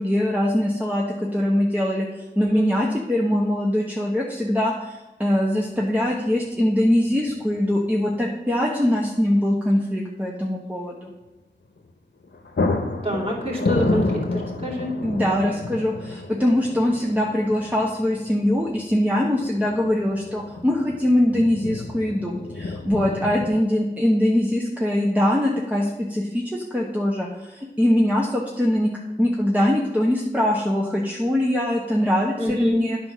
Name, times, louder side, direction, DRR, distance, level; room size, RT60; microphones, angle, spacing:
voice 1, 0.0-11.1 15.0-28.9 29.2-33.0, left 1 dB, 10° right, -3 dB, 1.2 m, -22 dB
sound 1, 5.6-5.7 7.3-7.7 8.0-8.1 11.8-12.0 12.2-23.6, left 2 dB, 80° left, 0.8 m, -30 dB
voice 2, 13.0-14.0 14.3-14.9 32.4-32.9, equal, 30° right, -4 dB, 2.6 m, -26 dB
9.9 x 4.3 x 6.0 m, 1.0 s
wide cardioid pair, 40°, 18 cm